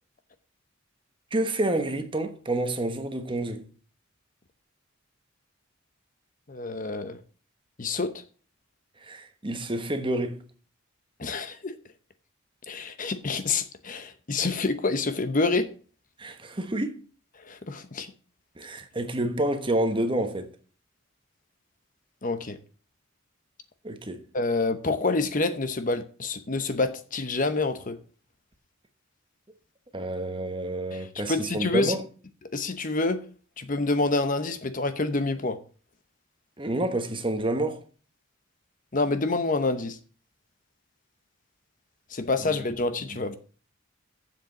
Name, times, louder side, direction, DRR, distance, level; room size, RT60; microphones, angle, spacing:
voice 1, 1.3-3.7 9.0-10.4 16.2-17.0 18.6-20.5 23.8-24.2 29.9-32.0 36.6-37.8 42.4-42.6, right 1 dB, 25° right, 1.1 m, -28 dB
voice 2, 6.5-7.2 7.8-8.2 11.2-11.8 12.7-15.7 17.4-18.1 22.2-22.6 24.3-28.0 30.9-31.9 32.5-33.2 33.6-35.6 38.9-40.0 42.1-43.4, left 3 dB, 40° left, 0.8 m, -27 dB
7.5 x 6.7 x 7.7 m
head